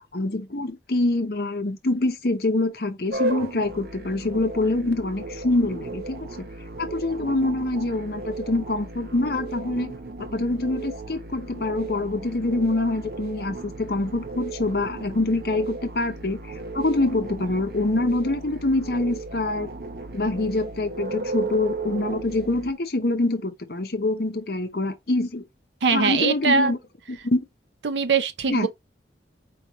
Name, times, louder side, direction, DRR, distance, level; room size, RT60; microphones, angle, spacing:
voice 1, 0.1-6.5 6.8-9.9 10.2-16.4 16.7-19.7 20.1-25.4 25.9-26.8 27.1-27.4 28.5-28.7, left 2 dB, 60° left, 0.8 m, -25 dB
sound 1, 3.1-22.7, right 2 dB, 55° right, 0.8 m, -35 dB
voice 2, 25.8-26.7 27.8-28.7, right 5 dB, 85° right, 0.7 m, -22 dB
4.6 x 3.2 x 3.0 m
head